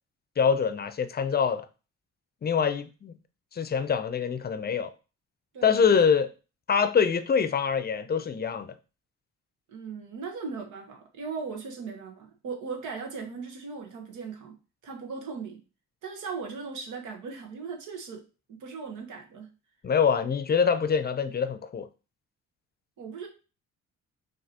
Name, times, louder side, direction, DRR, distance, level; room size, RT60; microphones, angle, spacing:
voice 1, 0.4-1.7 2.4-3.2 3.5-4.9 5.6-6.3 6.7-8.7 19.8-21.9, left 6 dB, 30° left, 0.5 m, -25 dB
voice 2, 9.7-14.6 14.8-15.6 16.0-18.2 18.5-19.5 23.0-23.3, right 5 dB, 80° right, 1.2 m, -38 dB
5.8 x 2.9 x 2.8 m
cardioid pair, 90°, 30 cm